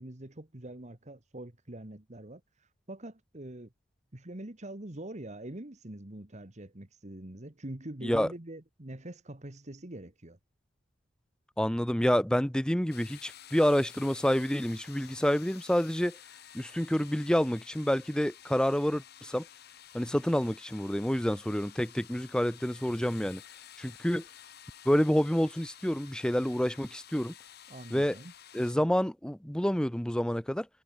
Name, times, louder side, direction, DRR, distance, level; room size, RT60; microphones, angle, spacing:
voice 1, 0.0-3.7 4.1-10.4 27.7-28.3, right 1 dB, 40° right, 1.7 m, -44 dB
voice 2, 11.6-16.2 16.5-19.4 19.9-23.4 23.8-24.2 24.8-27.3 27.9-28.2 28.5-30.7, equal, 5° left, 0.7 m, -28 dB
sound 1, 12.9-28.7, left 10 dB, 55° left, 1.5 m, -52 dB
head